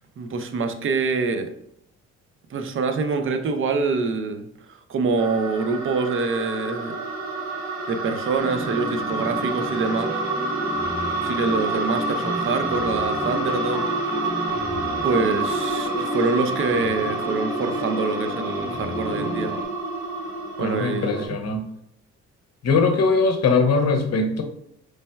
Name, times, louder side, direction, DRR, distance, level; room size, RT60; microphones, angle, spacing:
voice 1, 0.2-1.5 2.5-7.0 7.9-10.2 11.2-13.9 15.0-19.6 20.6-21.4, right 4 dB, 45° right, 8 dB, 0.5 m, -25 dB
sound 1, 5.2-21.3, right 2 dB, 70° right, 0.9 m, -28 dB
sound 2, 8.4-19.6, left 1 dB, 15° right, 0.8 m, -33 dB
voice 2, 20.6-21.6 22.6-24.4, left 4 dB, 60° left, 6 dB, 0.7 m, -21 dB
4.2 x 3.3 x 2.2 m, 0.72 s
cardioid pair, 90°, 30 cm